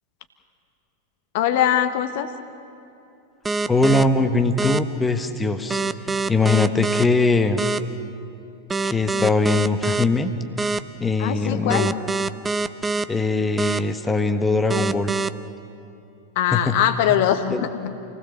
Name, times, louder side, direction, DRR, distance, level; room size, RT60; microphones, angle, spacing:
voice 1, 1.3-2.3 11.2-11.9 16.3-17.9, left 10 dB, 50° left, 8 dB, 1.4 m, -21 dB
sound 1, 3.4-4.0 4.6-4.8 5.7-7.0 7.6-7.8 8.7-10.0 10.6-10.8 11.7-13.0 13.6-13.8 14.7-15.3, right 3 dB, 10° right, 0.7 m, -24 dB
voice 2, 3.7-5.8 6.3-7.6 8.8-10.3 11.0-11.9 13.1-15.2 16.5-16.7 17.5-17.6, left 3 dB, 10° left, 6 dB, 1.4 m, -21 dB
28.5 x 19.0 x 7.1 m, 2.8 s
figure-of-eight pair, 90°, 0 cm